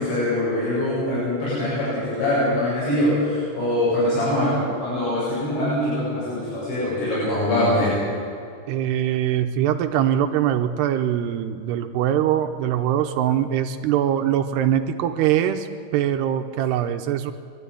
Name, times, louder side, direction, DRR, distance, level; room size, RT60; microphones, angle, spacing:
voice 1, 0.0-7.9, left 1 dB, 75° left, -9 dB, 10.0 m, -23 dB
voice 2, 8.7-17.3, right 10 dB, 80° right, 7 dB, 2.7 m, -22 dB
23.0 x 13.0 x 9.9 m, 2.4 s
omnidirectional pair, 5.2 m